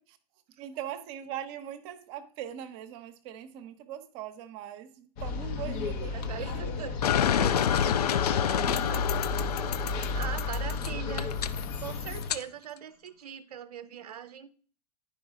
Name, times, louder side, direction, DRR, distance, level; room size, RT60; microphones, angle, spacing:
voice 1, 0.6-6.6 8.5-8.9, right 10 dB, 45° right, 8 dB, 0.9 m, -41 dB
sound 1, 5.2-12.3, left 3 dB, 45° left, 1.0 m, -33 dB
voice 2, 6.1-8.0 8.5-9.3 9.8-11.3 11.8-14.5, right 9 dB, 70° right, 13 dB, 0.6 m, -42 dB
sound 2, 7.0-12.4, left 9 dB, 75° left, 0.5 m, -29 dB
10.5 x 5.0 x 3.7 m, 0.44 s
figure-of-eight pair, 100°, 20 cm